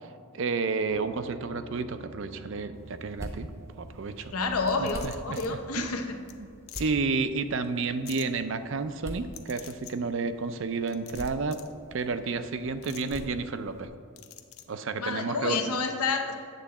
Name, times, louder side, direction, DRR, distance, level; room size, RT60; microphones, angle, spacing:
voice 1, 0.0-3.5 3.7-4.3 4.8-5.9 6.4-6.5 6.8-11.6 11.9-13.9 14.7-15.6, right 4 dB, 60° right, 10 dB, 0.4 m, -31 dB
sound 1, 0.9-7.5, right 2 dB, 45° left, 1.4 m, -49 dB
sound 2, 2.7-13.9, right 1 dB, 15° right, 0.7 m, -46 dB
voice 2, 4.3-6.2 15.0-16.3, left 4 dB, 90° left, 4 dB, 0.9 m, -29 dB
sound 3, 4.7-5.5 5.9-6.0 6.3-6.4 6.7-6.9 8.1-8.3 9.3-9.9 10.9-11.7 12.8-13.2 14.2-14.6, left 12 dB, 70° left, 0.6 m, -45 dB
9.1 x 3.8 x 7.1 m, 2.2 s
head